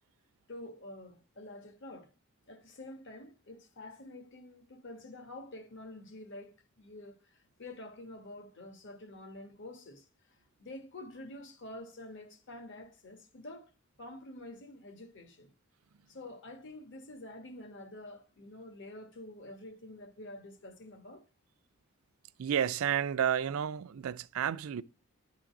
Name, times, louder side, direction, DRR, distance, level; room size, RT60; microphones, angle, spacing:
voice 1, 0.5-2.1 2.5-13.7 14.0-15.5 16.1-21.3, left 1 dB, 60° left, 1.3 m, -48 dB
voice 2, 22.4-24.8, right 9 dB, 75° right, 0.4 m, -31 dB
11.0 x 3.8 x 5.8 m
head